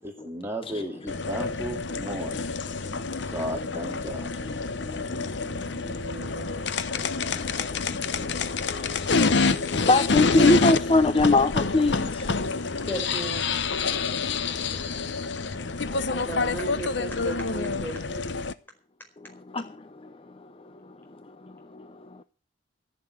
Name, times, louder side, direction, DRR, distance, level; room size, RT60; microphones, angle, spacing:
voice 1, 0.0-2.5 3.3-4.3, equal, 10° right, 2.4 m, -34 dB
sound 1, 1.1-18.5, left 4 dB, 65° left, 0.8 m, -27 dB
voice 2, 2.0-2.4 2.7-3.7 4.2-6.0 6.9-12.9 13.7-16.3 19.2-22.2, left 2 dB, 30° left, 0.6 m, -28 dB
voice 3, 5.8-6.7 12.9-13.5 16.1-18.3, right 1 dB, 10° left, 4.7 m, -35 dB
14.5 x 6.9 x 9.3 m
head